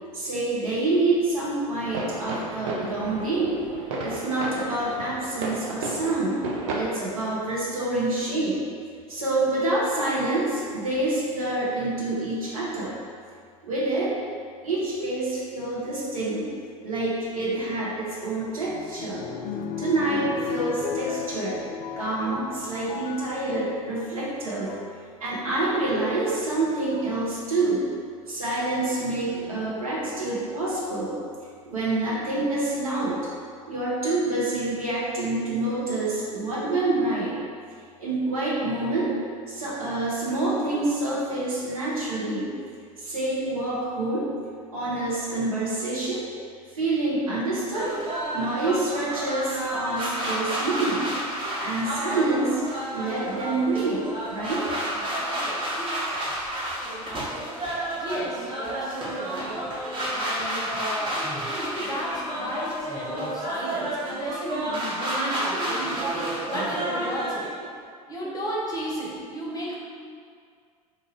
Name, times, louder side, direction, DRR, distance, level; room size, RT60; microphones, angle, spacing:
voice 1, 0.1-3.6 4.0-6.4 6.7-8.6 9.1-13.0 13.6-14.1 14.6-16.5 16.8-19.2 19.8-21.6 22.0-24.7 25.2-27.8 28.3-31.2 31.6-33.2 33.7-37.4 38.0-39.2 39.5-42.5 43.0-44.3 44.7-46.3 46.7-47.9 48.3-51.1 51.6-52.6 52.9-54.6, right 2 dB, 75° right, -7 dB, 1.0 m, -27 dB
sound 1, 1.8-6.8, right 2 dB, 55° right, 0.6 m, -33 dB
sound 2, 18.1-23.7 24.5-24.9 26.2-26.3 27.0-27.3 29.4-30.0 30.7-30.8 31.0-31.1, left 7 dB, 50° left, 0.4 m, -35 dB
sound 3, 47.7-67.5, right 1 dB, 25° right, 0.8 m, -31 dB
voice 2, 57.9-59.7 60.1-66.2 66.5-67.5 68.1-69.8, equal, 20° left, -4 dB, 0.8 m, -33 dB
2.7 x 2.6 x 4.1 m, 2.2 s
figure-of-eight pair, 75°, 19 cm